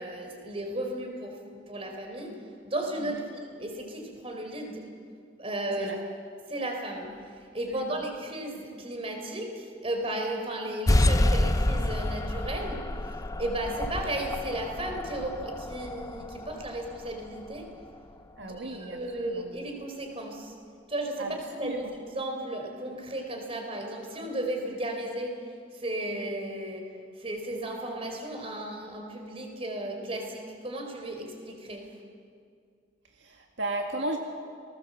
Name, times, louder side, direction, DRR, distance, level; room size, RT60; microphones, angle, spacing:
voice 1, 0.0-1.4 1.7-2.4 2.6-3.2 3.6-4.8 5.4-5.9 6.5-7.1 7.5-12.8 13.4-17.7 18.4-20.5 20.9-25.5 25.7-26.9 27.2-31.9, right 1 dB, 30° right, 3 dB, 4.2 m, -34 dB
voice 2, 7.7-8.0 18.4-19.5 21.2-21.9 33.2-34.2, right 2 dB, 70° right, 2 dB, 1.9 m, -35 dB
sound 1, 10.9-18.0, left 1 dB, 15° left, 0.5 m, -28 dB
29.5 x 19.5 x 7.6 m, 2.2 s
head